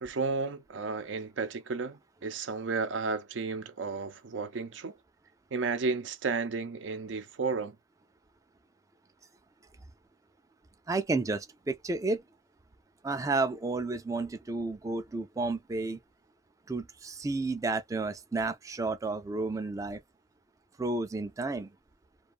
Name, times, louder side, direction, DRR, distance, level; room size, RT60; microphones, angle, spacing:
voice 1, 0.0-4.9 5.5-7.8, right 4 dB, 85° right, 0.5 m, -33 dB
voice 2, 10.9-12.2 13.0-16.0 16.7-20.0 20.8-21.7, right 3 dB, 20° right, 0.3 m, -31 dB
2.4 x 2.3 x 2.4 m
head